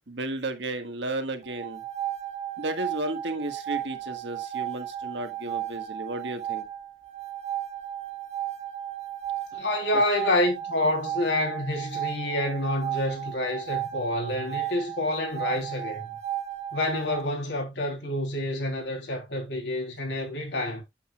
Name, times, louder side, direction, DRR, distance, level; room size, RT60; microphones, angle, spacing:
voice 1, 0.1-1.8 2.6-6.6, right 1 dB, 70° right, 1.6 m, -33 dB
sound 1, 1.4-17.2, right 12 dB, 35° right, 1.2 m, -34 dB
voice 2, 9.5-16.1 16.7-20.8, left 1 dB, 70° left, 3.3 m, -28 dB
8.3 x 8.0 x 2.3 m
head